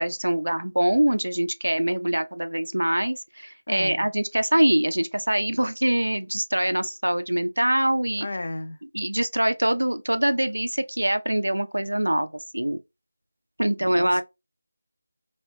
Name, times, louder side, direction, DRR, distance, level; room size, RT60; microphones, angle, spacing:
voice 1, 0.0-8.3 8.9-12.3 12.5-12.8 13.6-14.2, right 1 dB, 75° right, 0.4 m, -24 dB
voice 2, 3.7-4.1 8.2-8.8 13.8-14.2, left 2 dB, 50° left, 0.4 m, -34 dB
2.7 x 2.1 x 2.8 m
figure-of-eight pair, 165°, 0 cm